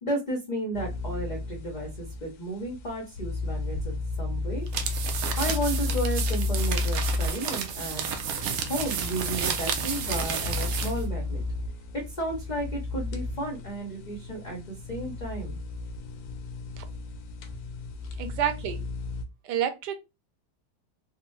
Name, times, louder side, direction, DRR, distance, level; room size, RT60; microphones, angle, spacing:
voice 1, 0.0-4.7 5.4-8.1 8.6-11.4 12.2-15.6, right 1 dB, 45° left, 0.5 m, -33 dB
sound 1, 0.7-19.2, left 3 dB, 70° left, 1.0 m, -33 dB
sound 2, 4.7-11.0, right 7 dB, 70° right, 1.0 m, -31 dB
voice 2, 18.2-18.8 19.4-20.0, right 10 dB, 90° right, 1.2 m, -29 dB
3.5 x 2.0 x 3.0 m
omnidirectional pair, 1.8 m